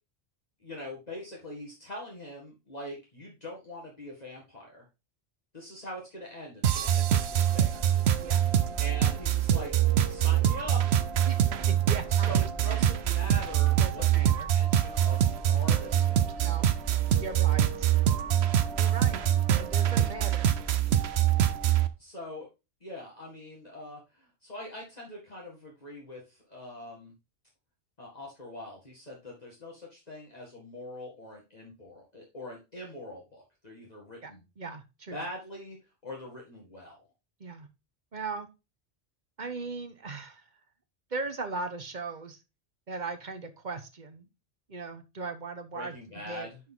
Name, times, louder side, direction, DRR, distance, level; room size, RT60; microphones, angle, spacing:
voice 1, 0.6-4.9 5.5-7.9 8.8-9.7 10.1-10.8 12.1-16.6 20.0-20.1 22.0-22.5 22.8-27.1 28.0-34.4 35.1-35.8 36.0-37.0 45.7-46.6, left 1 dB, 40° left, -3 dB, 2.1 m, -43 dB
sound 1, 6.6-21.9, right 10 dB, 80° right, 1.0 m, -25 dB
voice 2, 8.2-8.5 11.3-12.3 12.6-12.9 13.3-13.4 13.8-14.5 16.4-16.7 17.1-17.9 18.8-19.2 19.6-20.5 34.2-34.3 34.6-35.2 37.4-37.7 38.1-38.5 39.4-40.4 41.1-42.4 42.9-44.3 44.7-46.5, right 4 dB, 45° right, 8 dB, 1.2 m, -38 dB
10.5 x 4.3 x 3.7 m, 0.27 s
omnidirectional pair, 1.1 m